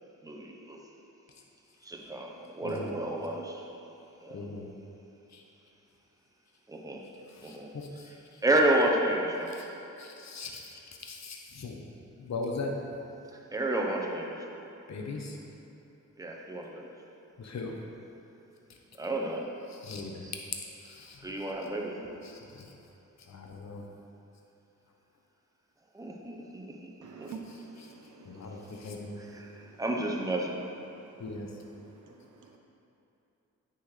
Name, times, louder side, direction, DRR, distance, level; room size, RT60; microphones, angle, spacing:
voice 1, 0.2-0.8 1.8-3.6 4.2-4.4 6.7-7.1 7.4-7.7 8.4-9.6 13.5-14.4 16.2-16.9 19.0-19.5 20.2-20.3 21.2-22.1 25.9-26.9 27.2-27.3 29.2-30.5, right 1 dB, 10° right, -1 dB, 0.9 m, -31 dB
voice 2, 2.6-2.9 4.3-4.7 5.3-5.4 7.3-8.4 9.5-9.7 10.0-11.8 12.2-12.7 14.9-15.4 17.4-17.7 19.7-20.3 20.8-21.3 22.2-22.7 23.2-23.9 27.5-27.9 28.2-29.2 31.2-31.5 32.1-32.2, left 3 dB, 55° left, 1 dB, 1.0 m, -40 dB
voice 3, 27.0-29.1 29.5-29.8 30.9-31.2 31.9-32.6, right 5 dB, 65° right, 3 dB, 0.7 m, -49 dB
9.2 x 6.2 x 3.3 m, 2.9 s
cardioid pair, 75°, 33 cm